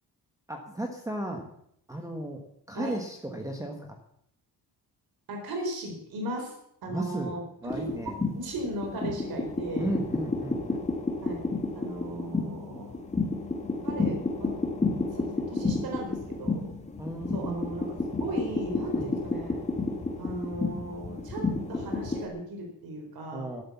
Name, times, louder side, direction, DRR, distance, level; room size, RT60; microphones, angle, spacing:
voice 1, 0.5-1.5 1.9-4.0 6.9-8.2 9.8-10.9 17.0-17.6 18.9-19.1 23.3-23.6, right 1 dB, 10° right, 3 dB, 1.3 m, -35 dB
voice 2, 5.3-6.5 6.8-7.8 8.3-9.9 11.2-11.4 11.8-12.9 13.8-14.5 15.1-16.7 17.3-17.9 18.2-19.6 20.2-23.6, right 1 dB, 65° right, 2 dB, 4.1 m, -37 dB
sound 1, 7.7-22.3, left 3 dB, 15° left, 2.2 m, -31 dB
12.5 x 11.0 x 7.2 m, 0.72 s
cardioid pair, 160°, 40 cm